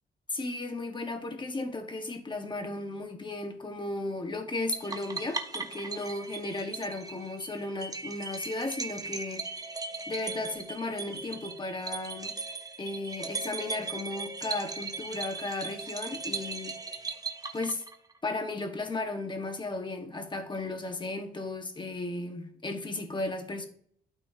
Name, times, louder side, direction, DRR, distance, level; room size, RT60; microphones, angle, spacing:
voice 1, 0.3-9.7 10.1-12.4 12.8-16.8 17.5-17.8 18.2-23.7, left 2 dB, 25° left, 1.4 m, -35 dB
sound 1, 4.7-18.2, right 4 dB, 20° right, 0.9 m, -38 dB
12.0 x 4.4 x 2.8 m
cardioid pair, 90°, 20 cm